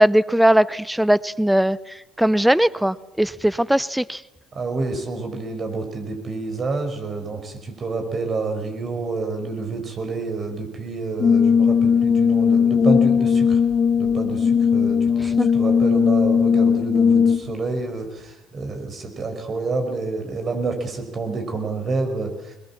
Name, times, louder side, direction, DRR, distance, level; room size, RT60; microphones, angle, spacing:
voice 1, 0.0-1.8 2.2-4.2 15.4-15.5, right 1 dB, 5° right, 19 dB, 0.7 m, -19 dB
voice 2, 4.5-13.6 14.0-22.5, right 3 dB, 40° right, 5 dB, 5.8 m, -28 dB
Brass instrument, 11.2-17.6, left 6 dB, 45° left, 1.3 m, -18 dB
22.0 x 21.0 x 7.4 m, 1.0 s
hypercardioid pair, 60°, 0 cm